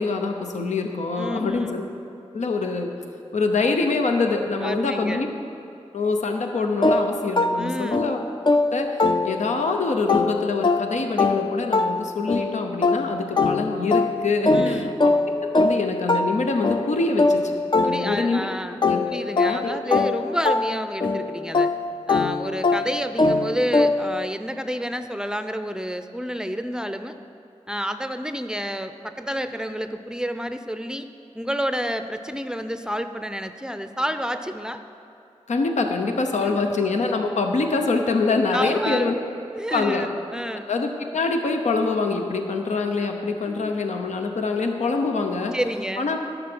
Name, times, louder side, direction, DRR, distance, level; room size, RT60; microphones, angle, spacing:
voice 1, 0.0-1.8 2.3-2.9 3.3-5.3 5.9-8.2 8.7-15.1 15.4-17.6 17.8-18.4 18.9-19.1 19.4-19.8 35.5-39.1 39.7-40.0 40.7-45.5 46.0-46.2, left 3 dB, 80° left, 4 dB, 0.8 m, -25 dB
voice 2, 1.2-1.7 4.6-5.3 7.6-8.1 14.5-15.0 17.8-18.8 19.1-21.7 22.1-27.2 27.7-31.1 31.3-34.8 36.4-36.6 38.5-39.1 39.5-40.7 43.5-43.7 45.5-46.1, equal, 5° right, 9 dB, 0.5 m, -29 dB
sound 1, 6.8-9.7 10.1-18.4 18.8-24.3, left 3 dB, 40° left, 0.5 m, -23 dB
11.0 x 7.0 x 6.1 m, 2.6 s
cardioid pair, 55°, 12 cm